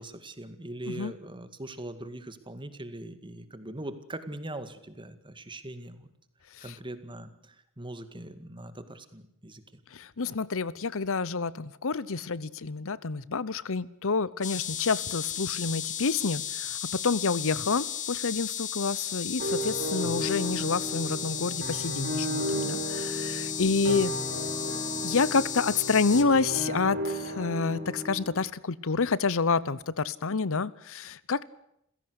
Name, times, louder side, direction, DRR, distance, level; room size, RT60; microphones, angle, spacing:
voice 1, 0.0-6.1 6.6-9.8 20.0-20.3 23.8-24.1, right 1 dB, 20° right, 10 dB, 2.1 m, -41 dB
voice 2, 9.9-24.1 25.0-31.4, left 4 dB, 65° left, 19 dB, 0.9 m, -28 dB
sound 1, 14.4-26.2, left 9 dB, 35° left, 2.0 m, -35 dB
sound 2, 19.4-28.3, equal, 45° right, 5.5 m, -34 dB
28.5 x 16.5 x 8.1 m, 0.76 s
head